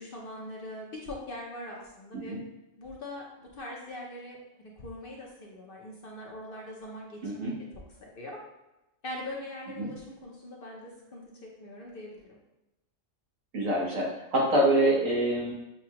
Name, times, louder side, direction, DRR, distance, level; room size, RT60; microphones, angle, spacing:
voice 1, 0.0-2.4 2.8-7.5 8.0-8.4 9.0-12.4, left 1 dB, 50° left, -2 dB, 0.8 m, -42 dB
voice 2, 7.2-7.5 9.8-9.9 13.5-15.5, right 1 dB, 75° right, -4 dB, 1.5 m, -26 dB
6.7 x 2.3 x 2.9 m, 0.97 s
omnidirectional pair, 1.4 m